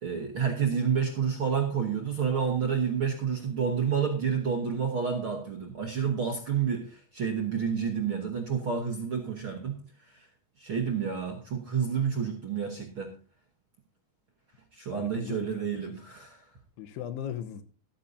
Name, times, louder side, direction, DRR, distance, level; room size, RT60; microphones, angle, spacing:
voice 1, 0.0-9.8 10.1-10.3 10.6-13.1 14.7-16.5, right 7 dB, 60° right, 1.4 m, -29 dB
voice 2, 14.9-16.0 16.8-17.6, left 9 dB, 90° left, 3.0 m, -38 dB
13.5 x 13.0 x 2.7 m
omnidirectional pair, 4.5 m